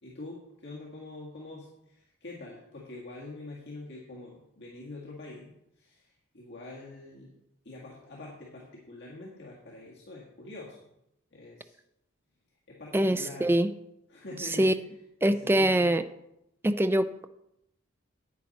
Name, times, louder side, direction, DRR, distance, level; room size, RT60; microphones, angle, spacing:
voice 1, 0.0-7.3 7.6-10.9 11.3-11.8 12.5-13.5 14.1-15.0 15.2-15.9, left 2 dB, 55° left, -4 dB, 1.8 m, -45 dB
voice 2, 12.9-13.7 14.6-14.7 15.2-16.0 16.6-17.3, right 1 dB, 10° right, 10 dB, 0.4 m, -24 dB
10.5 x 8.9 x 4.2 m, 0.83 s
head